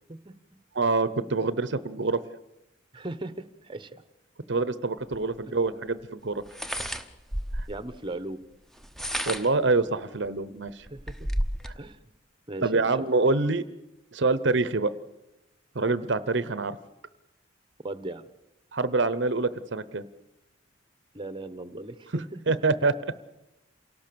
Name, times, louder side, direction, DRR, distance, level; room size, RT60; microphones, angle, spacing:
voice 1, 0.7-2.2 4.5-6.4 7.6-7.7 9.3-10.9 11.6-11.7 12.6-13.6 14.1-14.9 15.7-16.8 18.7-20.0 22.5-22.9, right 3 dB, 60° right, 15 dB, 0.8 m, -26 dB
voice 2, 2.9-4.0 7.7-8.4 10.9-11.3 11.8-12.0 12.5-13.1 17.8-18.2 21.1-22.6, right 2 dB, 25° right, 13 dB, 0.9 m, -38 dB
sound 1, 5.1-5.2 6.5-7.8 8.8-9.6 10.3-10.4 10.7-11.8, equal, ahead, 0.9 m, -31 dB
28.0 x 18.0 x 6.9 m, 0.97 s
head